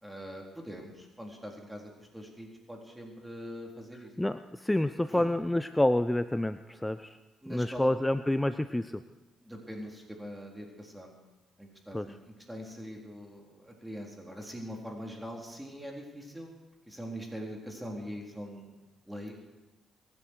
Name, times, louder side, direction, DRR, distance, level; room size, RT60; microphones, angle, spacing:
voice 1, 0.0-4.1 5.1-5.2 7.4-7.9 9.4-11.2 11.6-12.2 12.5-16.5 16.9-18.7 19.1-19.3, equal, 10° right, 0 dB, 4.0 m, -42 dB
voice 2, 4.2-7.2 7.5-9.0 11.9-12.1, left 1 dB, 10° left, 12 dB, 0.7 m, -28 dB
25.0 x 11.5 x 4.7 m, 1.1 s
hypercardioid pair, 45°, 0 cm